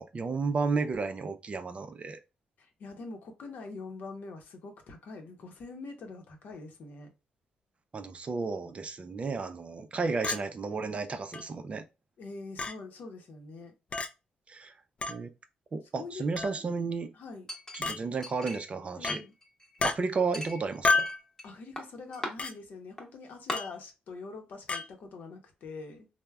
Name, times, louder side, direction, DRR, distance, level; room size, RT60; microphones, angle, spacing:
voice 1, 0.0-2.2 7.9-11.8 14.5-14.7 15.1-15.3 15.7-17.1 17.7-19.2 19.8-21.1, right 4 dB, 40° right, 0.4 m, -32 dB
voice 2, 2.6-7.1 12.2-13.7 15.9-16.3 17.1-17.5 19.0-19.3 21.4-26.1, left 3 dB, 70° left, 0.7 m, -44 dB
Chink clink, 10.2-10.4 11.3-11.4 12.6-12.7 13.9-14.1 15.0-15.2 16.4-16.6 17.8-18.0 19.0-19.2 19.8-20.0 20.8-21.2 22.4-22.5 23.5-23.7 24.7-24.9, left 3 dB, 40° left, 0.3 m, -29 dB
Chink clink 2, 17.5-18.8 19.1-19.9 20.3-21.5 21.8-22.3 23.0-23.1 23.5-23.6, left 1 dB, 15° left, 1.0 m, -40 dB
3.3 x 2.0 x 2.2 m
cardioid pair, 75°, 3 cm